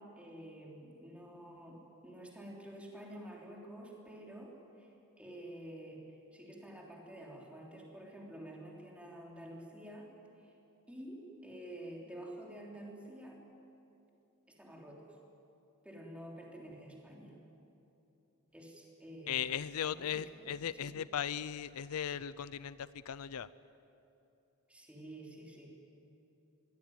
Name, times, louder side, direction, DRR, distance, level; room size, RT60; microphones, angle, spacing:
voice 1, 0.0-10.1 10.4-10.5 10.9-13.4 14.5-15.1 15.8-17.4 18.5-19.5 19.8-20.5 20.8-21.0 24.7-25.7, right 1 dB, 5° right, -2 dB, 3.4 m, -49 dB
voice 2, 19.3-23.5, left 9 dB, 75° left, 17 dB, 0.5 m, -37 dB
21.5 x 17.0 x 9.3 m, 2.9 s
head